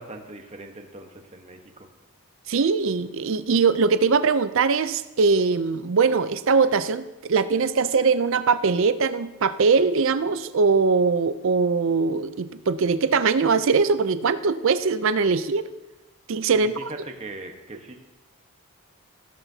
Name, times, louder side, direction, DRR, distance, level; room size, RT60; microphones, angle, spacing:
voice 1, 0.0-1.9 16.4-18.1, right 2 dB, 30° right, 3 dB, 1.2 m, -41 dB
voice 2, 2.5-15.6 16.3-16.9, right 4 dB, 60° right, 13 dB, 0.5 m, -21 dB
15.0 x 13.0 x 2.8 m, 1.0 s
head